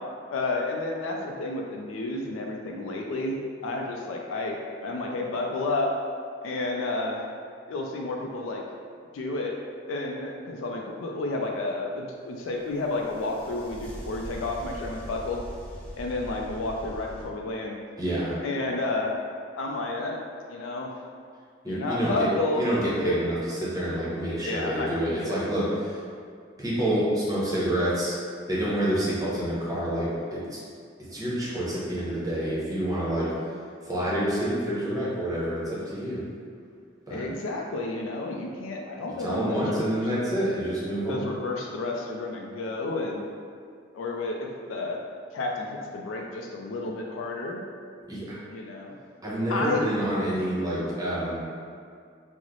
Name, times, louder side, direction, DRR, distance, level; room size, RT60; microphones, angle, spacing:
voice 1, 0.3-3.4 3.6-4.6 4.8-5.9 6.4-7.3 7.7-8.6 9.1-9.5 9.9-15.4 15.9-17.8 18.4-19.1 19.6-20.2 20.5-20.9 21.7-22.7 23.0-23.2 24.4-25.3 37.1-40.0 41.1-43.3 43.9-45.0 45.3-47.6 48.5-48.9 49.5-49.8, left 2 dB, 90° left, 0 dB, 0.3 m, -31 dB
sound 1, 12.7-17.3, equal, 5° left, 0.5 m, -41 dB
voice 2, 18.0-18.3 21.6-22.1 22.5-23.4 23.6-26.0 26.6-28.1 28.5-30.6 31.1-33.3 33.8-36.2 37.1-37.2 39.2-41.3 48.1-48.4 49.2-51.3, right 1 dB, 20° right, -8 dB, 0.8 m, -28 dB
3.1 x 2.0 x 3.7 m, 2.2 s
head